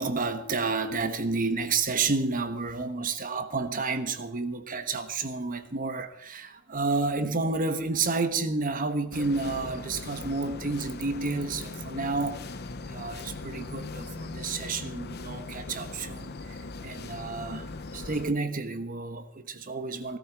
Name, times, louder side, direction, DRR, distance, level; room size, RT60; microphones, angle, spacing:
voice 1, 0.0-12.5 12.9-20.2, right 3 dB, 40° right, 1.2 m, -30 dB
sound 1, 9.1-18.3, left 3 dB, 50° left, 0.8 m, -39 dB
17.5 x 13.5 x 4.7 m
head